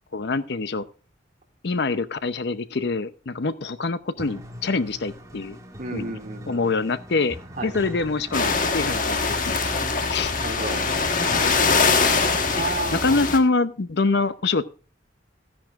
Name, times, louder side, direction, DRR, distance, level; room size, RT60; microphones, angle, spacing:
voice 1, 0.1-0.9 1.6-5.6 5.9-6.2 6.5-7.4 7.6-9.6 10.1-10.3 12.9-14.6, left 3 dB, 60° left, 14 dB, 0.7 m, -25 dB
sound 1, 4.2-13.4, equal, 20° right, 1.7 m, -41 dB
voice 2, 5.8-6.6 7.6-7.7 10.4-10.8 12.3-13.2, right 2 dB, 45° right, 3 dB, 2.2 m, -32 dB
sound 2, 8.3-13.4, left 4 dB, 45° left, 1.3 m, -22 dB
14.0 x 10.5 x 2.4 m, 0.36 s
head